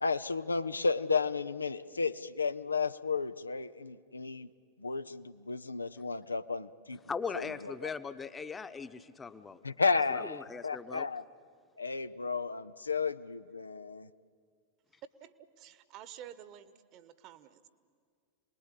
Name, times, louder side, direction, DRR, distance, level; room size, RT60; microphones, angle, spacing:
voice 1, 0.0-4.5 4.8-7.0 7.3-7.9 9.6-11.2 11.8-14.1, left 4 dB, 80° left, 13 dB, 0.6 m, -33 dB
voice 2, 7.1-9.6 10.1-11.1, left 5 dB, 15° left, 11 dB, 1.1 m, -39 dB
voice 3, 15.2-17.7, right 10 dB, 40° right, 14 dB, 1.3 m, -51 dB
28.0 x 20.5 x 8.4 m, 2.1 s
figure-of-eight pair, 90°, 0 cm